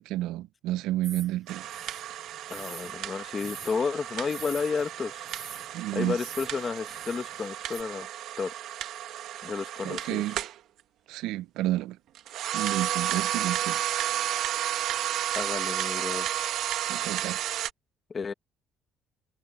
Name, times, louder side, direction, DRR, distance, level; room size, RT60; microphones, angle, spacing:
voice 1, 0.0-1.7 5.7-6.2 9.8-10.4 11.1-12.0 12.5-13.8 16.9-17.4, right 15 dB, 90° right, 0.6 m, -30 dB
sound 1, 1.0-7.8, right 5 dB, 25° right, 6.6 m, -46 dB
sound 2, 1.5-10.6 12.1-17.7, right 12 dB, 65° right, 1.3 m, -32 dB
voice 2, 2.5-5.3 5.9-8.1 8.4-8.5 9.4-10.2 15.4-16.3 18.1-18.3, left 5 dB, 25° left, 1.1 m, -32 dB
cardioid pair, 150°, 0 cm